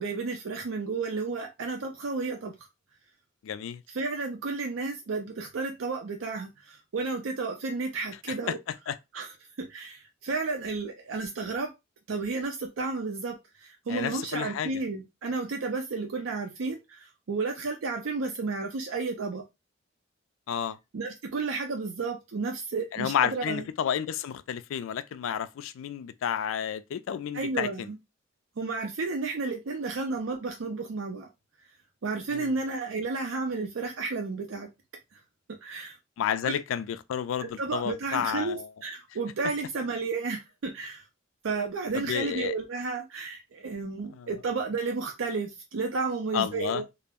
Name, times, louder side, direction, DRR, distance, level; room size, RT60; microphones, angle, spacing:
voice 1, 0.0-2.5 3.9-8.6 9.1-11.7 12.1-19.4 20.9-23.7 27.3-28.0 28.6-31.3 32.0-34.7 35.1-35.2 35.6-36.0 36.4-36.5 37.4-41.0 41.4-46.8, right 4 dB, 85° right, 0.5 m, -32 dB
voice 2, 3.4-3.8 8.5-8.6 8.9-9.0 13.9-14.8 20.5-20.8 22.9-27.9 32.3-32.5 36.2-38.7 41.9-42.5 44.1-44.3 46.3-46.8, left 9 dB, 90° left, 0.3 m, -31 dB
2.4 x 2.0 x 3.4 m
head